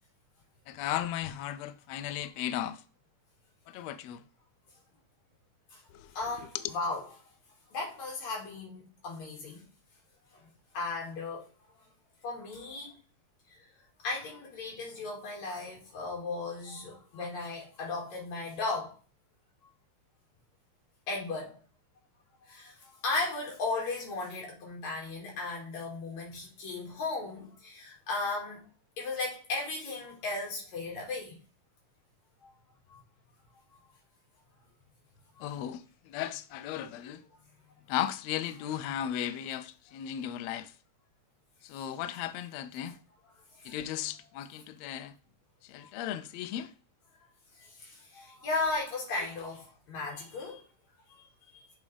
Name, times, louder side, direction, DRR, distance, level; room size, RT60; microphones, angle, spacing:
voice 1, 0.7-2.8 3.7-4.2 5.9-6.2 6.5-6.6 35.4-37.2 37.9-40.7 41.6-43.0 43.6-45.1 45.6-46.7 49.2-49.3, left 11 dB, 85° left, 1.5 m, -36 dB
voice 2, 6.1-7.0 7.7-9.6 10.3-10.5 10.7-11.4 12.2-13.0 14.0-18.9 21.1-21.6 22.5-28.6 29.0-31.4 32.4-32.5 32.9-33.0 35.4-35.5 41.7-41.9 43.6-43.7 45.8-45.9 47.6-50.6 51.2-51.3, left 3 dB, 65° left, 3.4 m, -36 dB
7.3 x 4.0 x 3.3 m
omnidirectional pair, 3.5 m